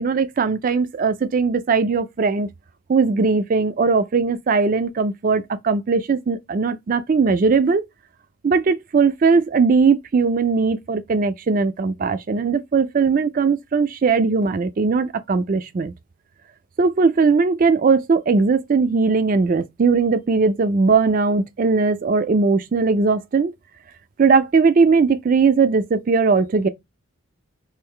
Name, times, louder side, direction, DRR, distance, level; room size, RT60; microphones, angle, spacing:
voice 1, 0.0-2.5 2.9-7.9 8.4-15.9 16.8-23.5 24.2-26.7, right 4 dB, 40° right, 0.3 m, -19 dB
3.2 x 2.6 x 3.6 m
head